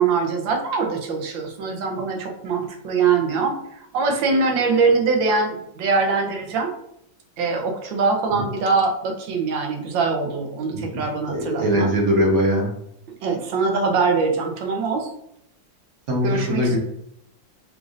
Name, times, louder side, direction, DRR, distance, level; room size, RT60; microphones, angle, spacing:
voice 1, 0.0-3.5 3.9-6.7 7.4-11.9 13.2-15.1 16.2-16.8, right 4 dB, 75° right, 2 dB, 1.5 m, -22 dB
voice 2, 11.2-12.7 16.1-16.8, equal, 45° right, -2 dB, 1.1 m, -21 dB
6.1 x 2.6 x 2.5 m, 0.76 s
omnidirectional pair, 2.1 m